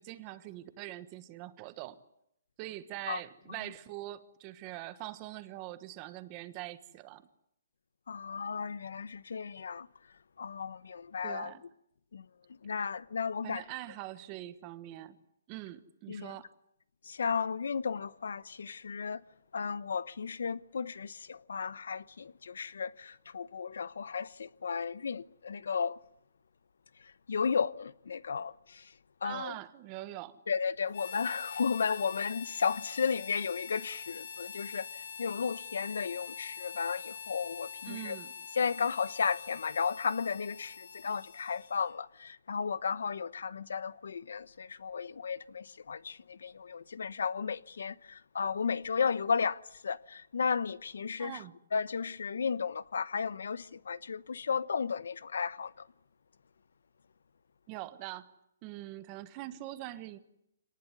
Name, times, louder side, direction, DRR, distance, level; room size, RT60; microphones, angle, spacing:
voice 1, 0.0-2.0 2.6-7.2 11.2-11.6 13.4-15.2 15.5-16.5 29.2-30.4 37.8-38.3 51.2-51.5 57.7-58.3 58.6-60.2, right 16 dB, 20° right, 1.2 m, -43 dB
voice 2, 8.1-9.9 10.4-11.5 12.1-13.6 16.1-16.4 17.0-19.2 19.5-26.0 27.0-28.9 29.2-29.5 30.5-38.2 38.6-51.4 51.7-55.9, left 6 dB, 75° left, 0.9 m, -34 dB
Harmonica, 30.9-42.0, left 7 dB, 45° left, 2.4 m, -45 dB
25.5 x 19.0 x 9.6 m
hypercardioid pair, 170°, 0 cm